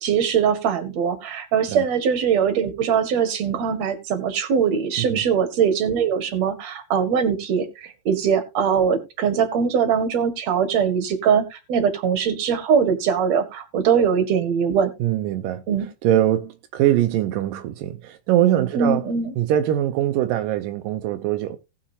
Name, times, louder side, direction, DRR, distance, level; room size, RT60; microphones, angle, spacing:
voice 1, 0.0-14.9 15.7-15.9 18.8-19.3, right 7 dB, 50° right, 2.5 m, -21 dB
voice 2, 15.0-15.6 16.0-19.0 19.4-21.6, right 12 dB, 80° right, 2.0 m, -22 dB
19.0 x 6.4 x 2.8 m
omnidirectional pair, 4.8 m